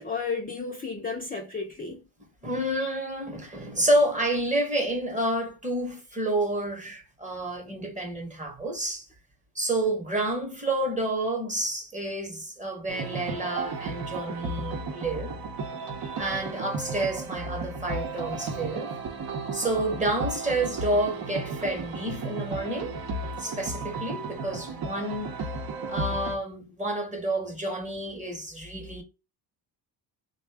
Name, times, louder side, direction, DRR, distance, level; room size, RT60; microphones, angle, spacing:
voice 1, 0.0-2.0, left 4 dB, 20° left, 0.5 m, -33 dB
voice 2, 2.4-9.1 9.5-15.3 15.8-18.9 19.5-23.0 23.4-25.3 25.9-29.0, right 1 dB, 15° right, 0.9 m, -29 dB
sound 1, 12.9-26.4, right 3 dB, 55° right, 0.8 m, -34 dB
3.6 x 2.3 x 3.3 m
cardioid pair, 125°, 44 cm